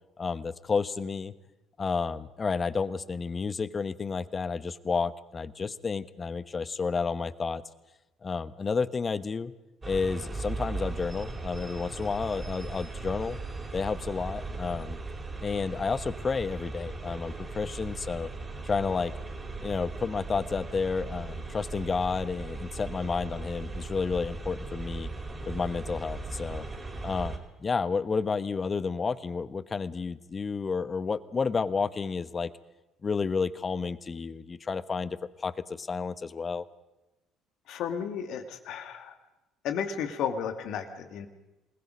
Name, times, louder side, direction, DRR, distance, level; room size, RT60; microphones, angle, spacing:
voice 1, 0.2-1.3 1.8-7.6 8.2-9.5 9.8-13.4 13.7-15.0 15.4-18.3 18.6-19.1 19.6-25.1 25.5-26.6 27.0-32.5 33.0-36.6, left 5 dB, 30° left, 16 dB, 1.1 m, -31 dB
sound 1, 9.8-27.4, right 3 dB, 25° right, 4.3 m, -38 dB
voice 2, 37.7-39.1 39.6-41.3, left 7 dB, 60° left, 7 dB, 2.3 m, -33 dB
28.0 x 20.5 x 5.2 m, 1.0 s
figure-of-eight pair, 55°, 0 cm